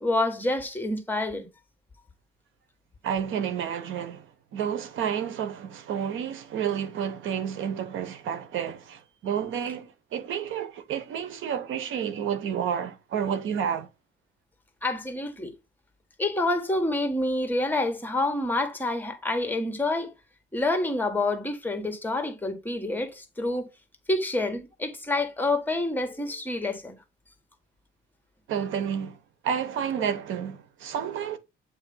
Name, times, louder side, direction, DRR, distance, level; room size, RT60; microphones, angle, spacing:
voice 1, 0.0-1.5 14.8-15.5 16.2-20.1 20.5-23.7 24.1-26.9, left 2 dB, 10° left, 1.6 m, -27 dB
voice 2, 3.0-4.3 4.5-13.9 28.5-29.2 29.4-31.4, right 8 dB, 80° right, 1.0 m, -30 dB
8.6 x 3.0 x 5.5 m
cardioid pair, 90°, 20 cm